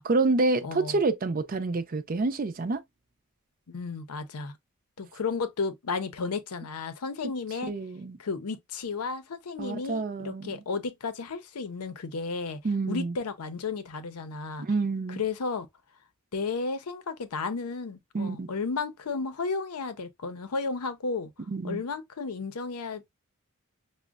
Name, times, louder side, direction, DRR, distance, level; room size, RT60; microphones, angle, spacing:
voice 1, 0.0-2.8 7.7-8.2 9.6-10.6 12.6-13.1 14.6-15.2 18.1-18.5 21.5-21.8, right 3 dB, 40° right, 0.5 m, -28 dB
voice 2, 0.6-1.0 3.7-4.5 5.0-7.7 8.2-12.6 12.9-14.7 15.2-15.7 16.3-21.3 21.6-23.1, left 4 dB, 90° left, 0.6 m, -33 dB
6.1 x 2.1 x 2.3 m
head